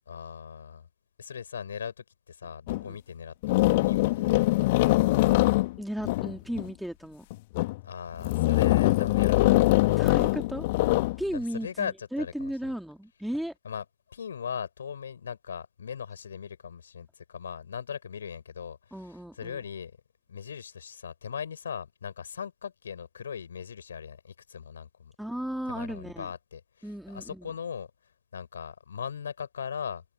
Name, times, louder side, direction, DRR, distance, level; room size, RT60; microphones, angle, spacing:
voice 1, 0.1-0.9 1.2-4.8 7.8-9.6 11.3-12.7 13.6-19.9 20.3-25.1 25.7-27.9 28.3-30.0, left 7 dB, 70° left, 7.2 m, -39 dB
sound 1, 2.7-2.8 3.4-6.7 7.3-7.8 8.2-11.2, left 20 dB, 50° left, 1.9 m, -23 dB
voice 2, 5.8-7.2 10.0-10.7 11.2-13.5 18.9-19.6 25.2-26.3 26.8-27.5, equal, ahead, 2.6 m, -35 dB
figure-of-eight pair, 90°, 0 cm